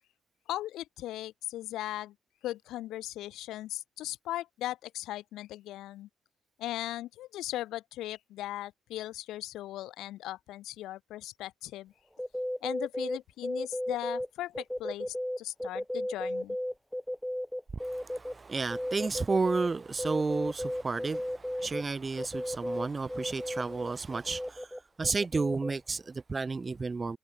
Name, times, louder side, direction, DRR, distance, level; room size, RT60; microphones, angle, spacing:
voice 1, 0.5-2.1 2.4-6.1 6.6-11.9 12.6-16.6, left 14 dB, 85° left, 5.9 m, -38 dB
sound 1, 12.2-14.3 14.5-18.3 18.7-19.7 20.0-21.8 22.2-25.7, equal, 5° left, 2.7 m, -34 dB
voice 2, 17.7-27.2, right 4 dB, 30° right, 1.1 m, -32 dB
cardioid pair, 90°, 0 cm